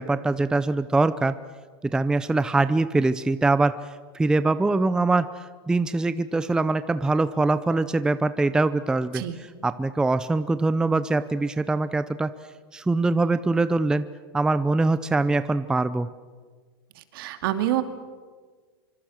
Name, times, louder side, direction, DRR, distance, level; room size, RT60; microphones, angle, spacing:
voice 1, 0.0-1.4 1.8-3.8 4.1-5.3 5.7-9.2 9.6-12.3 12.7-14.1 14.3-16.1, right 3 dB, 5° right, 13 dB, 0.6 m, -23 dB
voice 2, 17.1-17.8, right 13 dB, 65° right, 8 dB, 2.5 m, -26 dB
25.5 x 25.5 x 6.5 m, 1.5 s
supercardioid pair, 140°, 13 cm